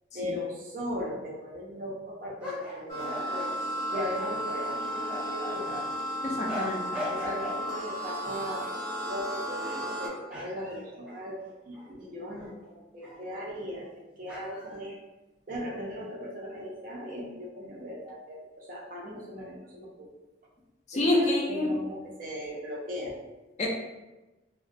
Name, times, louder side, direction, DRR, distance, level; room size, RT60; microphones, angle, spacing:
voice 1, 0.1-3.5 3.9-5.7 7.1-8.7 9.1-13.9 14.2-15.0 15.5-20.1 20.9-23.2, equal, 50° right, -3 dB, 0.5 m, -38 dB
sound 1, 2.4-5.8 6.5-7.6 8.0-8.8 9.5-10.0 10.3-11.9 12.4-12.5 13.0-13.2 14.3-14.7, left 1 dB, 5° right, 0.6 m, -40 dB
sound 2, 2.9-10.1, equal, 65° right, 0.9 m, -34 dB
voice 2, 6.2-6.8 20.9-21.7 23.6-23.7, left 1 dB, 40° left, -1 dB, 0.4 m, -26 dB
2.3 x 2.1 x 2.5 m, 1.1 s
head